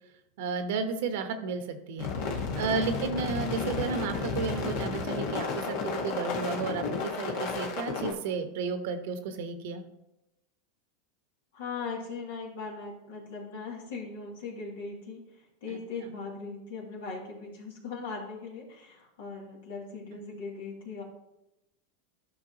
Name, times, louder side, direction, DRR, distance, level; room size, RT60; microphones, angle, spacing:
voice 1, 0.4-9.8 15.7-15.8, right 5 dB, 70° right, 8 dB, 1.0 m, -33 dB
sound 1, 2.0-8.1, left 4 dB, 60° left, 1.5 m, -32 dB
voice 2, 11.5-21.0, left 4 dB, 75° left, -1 dB, 2.5 m, -39 dB
12.0 x 5.8 x 2.9 m, 0.91 s
hypercardioid pair, 105°, 0 cm